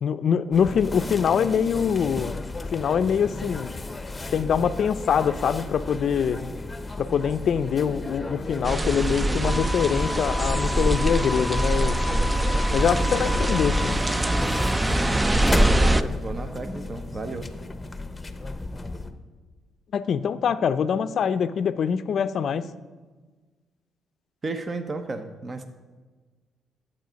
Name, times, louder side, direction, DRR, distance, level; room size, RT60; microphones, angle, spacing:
voice 1, 0.0-2.3 2.7-3.7 4.3-6.4 7.0-12.0 12.7-14.0 19.9-22.7, left 7 dB, 60° left, 13 dB, 0.5 m, -24 dB
sound 1, 0.5-19.1, left 3 dB, 20° left, 0.8 m, -32 dB
sound 2, 8.6-16.0, right 1 dB, 15° right, 0.4 m, -23 dB
voice 2, 9.1-9.7 15.4-17.5 24.4-25.7, right 3 dB, 35° right, 9 dB, 0.8 m, -33 dB
12.0 x 7.6 x 5.1 m, 1.4 s
cardioid pair, 90°, 0 cm